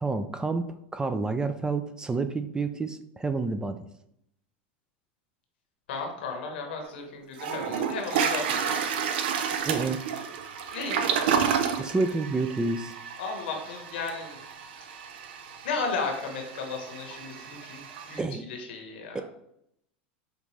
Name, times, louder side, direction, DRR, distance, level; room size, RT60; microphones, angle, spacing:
voice 1, 0.0-0.6 0.9-3.8 9.6-10.0 11.8-12.9 18.2-18.5 19.1-19.2, right 3 dB, 15° right, 9 dB, 0.3 m, -29 dB
voice 2, 5.9-8.9 10.7-11.3 13.2-14.4 15.6-17.8 18.1-18.2 18.5-19.2, left 4 dB, 75° left, 2 dB, 1.1 m, -34 dB
Toilet flush, 6.8-6.9 7.4-18.2, right 7 dB, 75° right, 0.5 m, -31 dB
5.2 x 2.5 x 3.2 m, 0.75 s
hypercardioid pair, 105°, 6 cm